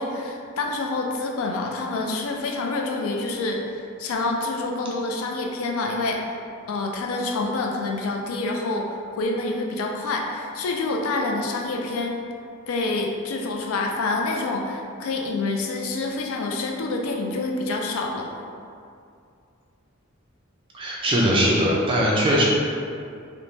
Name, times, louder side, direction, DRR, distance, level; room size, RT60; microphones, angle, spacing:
voice 1, 0.0-3.6 4.0-6.2 6.7-12.2 12.7-18.3, left 2 dB, 75° left, 1 dB, 0.3 m, -27 dB
voice 2, 20.7-22.4, equal, 25° right, -4 dB, 0.3 m, -20 dB
3.1 x 2.1 x 2.6 m, 2.4 s
head